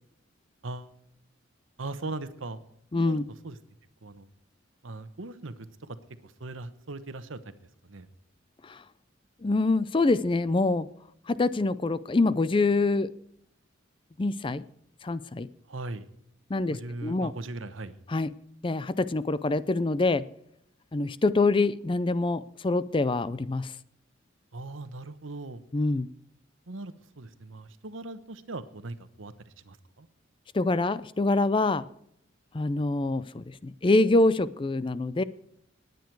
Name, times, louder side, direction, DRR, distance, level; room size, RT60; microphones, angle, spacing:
voice 1, 1.8-2.6 2.9-3.2 3.4-3.6 4.0-4.3 4.8-5.5 6.2-7.4 7.8-8.1 15.7-16.1 16.7-18.0 24.5-25.6 26.7-29.3 29.6-30.1, right 2 dB, 80° right, 12 dB, 1.0 m, -39 dB
voice 2, 2.9-3.3 8.6-8.8 9.4-10.9 11.3-13.1 14.2-14.6 15.0-15.5 16.5-17.3 18.1-18.3 18.6-20.3 20.9-23.7 25.7-26.1 30.5-31.9 32.5-35.2, left 2 dB, 25° left, 16 dB, 0.4 m, -25 dB
19.5 x 9.4 x 4.7 m, 0.72 s
head